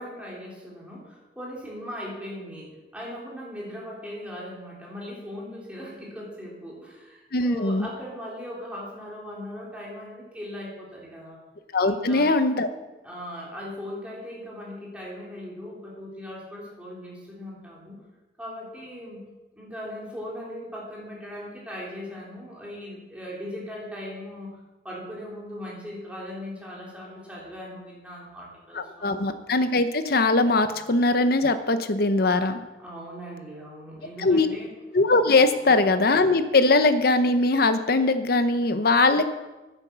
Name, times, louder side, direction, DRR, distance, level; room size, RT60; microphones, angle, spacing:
voice 1, 0.0-11.4 11.8-12.3 13.0-18.0 18.4-19.2 19.6-24.6 24.8-29.1 32.8-34.7 35.5-35.7, equal, 5° right, -5 dB, 3.4 m, -39 dB
voice 2, 7.3-7.9 11.7-12.7 28.7-32.6 34.2-34.5 34.9-39.4, left 2 dB, 55° left, 10 dB, 0.9 m, -21 dB
10.0 x 9.0 x 6.9 m, 1.1 s
head